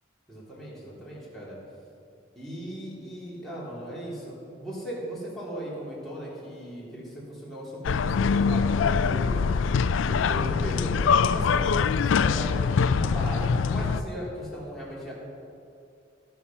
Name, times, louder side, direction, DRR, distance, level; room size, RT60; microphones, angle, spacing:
voice 1, 0.3-1.6 2.3-9.4 10.1-11.0 11.3-15.1, right 1 dB, ahead, -8 dB, 3.2 m, -38 dB
sound 1, 7.8-14.0, left 5 dB, 90° left, 0.4 m, -23 dB
16.0 x 5.7 x 5.9 m, 2.5 s
head